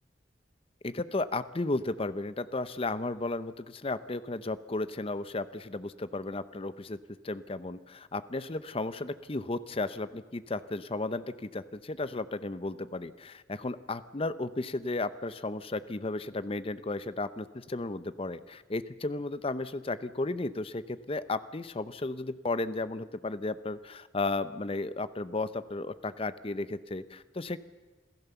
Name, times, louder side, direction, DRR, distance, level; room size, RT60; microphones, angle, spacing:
voice 1, 0.8-7.0 7.2-27.6, left 2 dB, 30° left, 14 dB, 0.7 m, -34 dB
27.0 x 14.5 x 7.0 m, 1.2 s
head